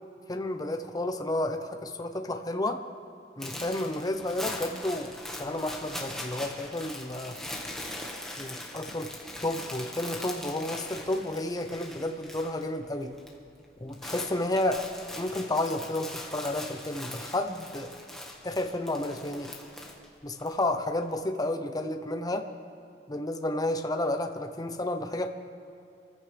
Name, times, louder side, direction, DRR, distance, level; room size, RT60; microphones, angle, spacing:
voice 1, 0.3-2.8 3.4-7.4 8.4-9.1 9.4-13.2 13.8-14.8 15.2-17.9 18.4-19.5 20.2-22.5 23.1-25.3, left 1 dB, 20° left, 6 dB, 0.8 m, -31 dB
sound 1, 3.4-12.7 12.9-13.3 13.6-20.6, left 1 dB, 5° left, 1.6 m, -41 dB
26.5 x 15.0 x 3.4 m, 2.6 s
head